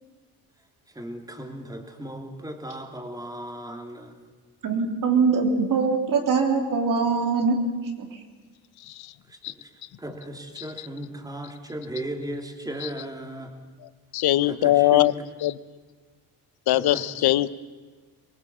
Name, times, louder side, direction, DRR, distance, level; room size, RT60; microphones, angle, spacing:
voice 1, 0.9-4.2 9.3-13.5 14.4-15.1 16.7-17.1, right 1 dB, 10° right, 3 dB, 3.0 m, -36 dB
voice 2, 4.6-7.6 8.0-8.2, right 5 dB, 55° right, 4 dB, 3.3 m, -22 dB
voice 3, 14.1-15.1 15.4-15.5 16.7-17.5, left 15 dB, 70° left, 16 dB, 0.8 m, -21 dB
23.5 x 19.5 x 7.3 m, 1.4 s
cardioid pair, 120°, 39 cm